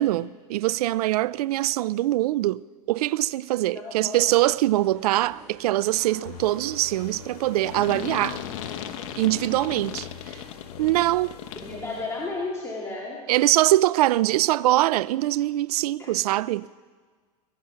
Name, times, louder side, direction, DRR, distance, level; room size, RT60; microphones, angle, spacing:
voice 1, 0.0-2.6 2.9-8.4 9.2-10.1 10.8-11.4 13.3-16.7, right 16 dB, 75° right, 0.5 m, -23 dB
voice 2, 3.7-4.3 11.6-13.2 14.2-14.3 16.0-16.1, left 3 dB, 15° left, 2.4 m, -33 dB
sound 1, 4.3-10.0, right 1 dB, 5° right, 5.3 m, -50 dB
sound 2, 6.3-12.7, left 8 dB, 80° left, 1.8 m, -44 dB
sound 3, 7.6-11.8, left 11 dB, 55° left, 1.2 m, -36 dB
21.5 x 11.0 x 5.8 m
supercardioid pair, 125°, 20 cm